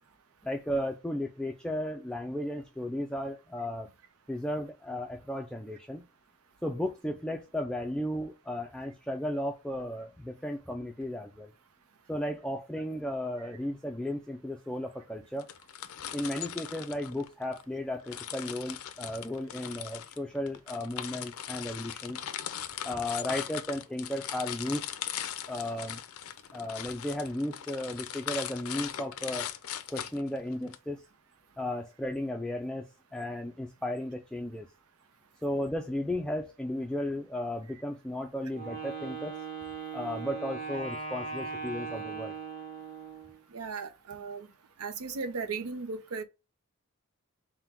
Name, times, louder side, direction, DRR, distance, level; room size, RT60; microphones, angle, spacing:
voice 1, 0.4-3.9 4.3-6.0 6.6-11.5 12.1-15.5 16.1-22.2 22.8-24.9 25.5-26.0 26.5-29.5 29.9-31.0 31.6-34.7 35.4-39.4 39.9-42.3, left 1 dB, 5° left, 0.3 m, -35 dB
sound 1, 15.4-17.6 18.1-30.8, left 10 dB, 75° left, 0.4 m, -39 dB
Wind instrument woodwind instrument, 38.5-43.4, right 5 dB, 40° right, 1.7 m, -39 dB
voice 2, 43.5-44.5 44.8-46.2, right 4 dB, 85° right, 0.6 m, -36 dB
3.7 x 2.2 x 4.2 m
head